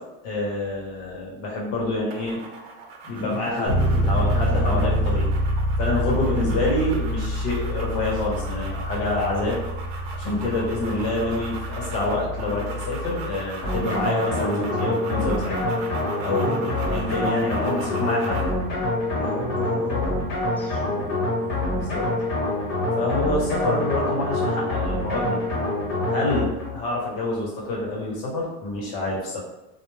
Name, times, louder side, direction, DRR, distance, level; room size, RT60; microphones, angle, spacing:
voice 1, 0.2-2.4 3.0-3.8 4.1-5.3 5.8-9.6 10.2-15.6 16.2-18.4 20.9-21.1 21.7-22.1 22.9-25.4 26.1-29.4, left 2 dB, 55° left, -3 dB, 1.1 m, -27 dB
sound 1, 2.1-18.6, right 3 dB, 90° right, 0.6 m, -39 dB
voice 2, 3.2-5.2 6.1-6.6 16.2-16.8 19.2-20.3 20.5-20.8, left 1 dB, 5° left, -6 dB, 0.6 m, -33 dB
Bass guitar, 3.7-13.5, equal, 55° right, 1.1 m, -26 dB
sound 2, 13.6-26.8, left 1 dB, 35° left, 1.2 m, -26 dB
2.3 x 2.2 x 3.2 m, 0.96 s
supercardioid pair, 150°, 29 cm